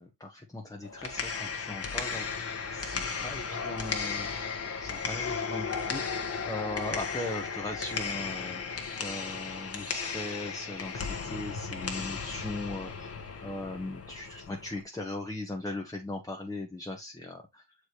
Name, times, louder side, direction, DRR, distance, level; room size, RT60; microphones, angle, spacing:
voice 1, 0.0-17.6, left 2 dB, 10° left, 1.1 m, -39 dB
sound 1, 0.8-14.8, left 5 dB, 30° left, 1.4 m, -35 dB
6.5 x 4.9 x 3.1 m
cardioid pair, 100°, 46 cm